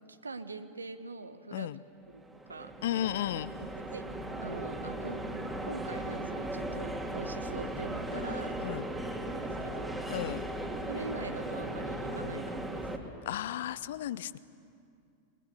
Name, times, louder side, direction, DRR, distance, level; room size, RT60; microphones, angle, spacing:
voice 1, 0.1-1.7 2.1-2.2 2.5-3.1 3.6-4.0 4.4-5.2 5.6-8.6 9.2-10.0 10.9-12.9, right 3 dB, 75° right, 11 dB, 1.1 m, -43 dB
sound 1, 2.1-13.0, right 1 dB, 10° right, 2.3 m, -37 dB
voice 2, 2.8-3.5 8.6-8.8 10.1-10.4 13.3-14.4, left 12 dB, 55° left, 18 dB, 0.6 m, -34 dB
28.0 x 21.5 x 6.8 m, 2.4 s
figure-of-eight pair, 90°, 0 cm